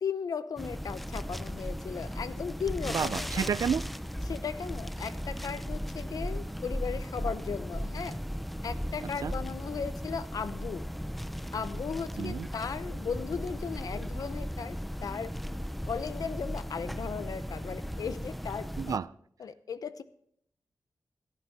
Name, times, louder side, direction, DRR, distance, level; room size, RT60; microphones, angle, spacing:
voice 1, 0.0-3.5 4.2-8.2 8.6-10.8 11.5-15.3 15.9-19.0 19.4-20.0, left 6 dB, 85° left, 0.7 m, -36 dB
sound 1, 0.6-19.0, equal, ahead, 0.4 m, -36 dB
voice 2, 2.9-3.9 9.2-9.3 12.2-12.5 18.8-19.1, right 7 dB, 75° right, 0.4 m, -30 dB
16.0 x 9.3 x 4.1 m
wide cardioid pair, 85°, 6 cm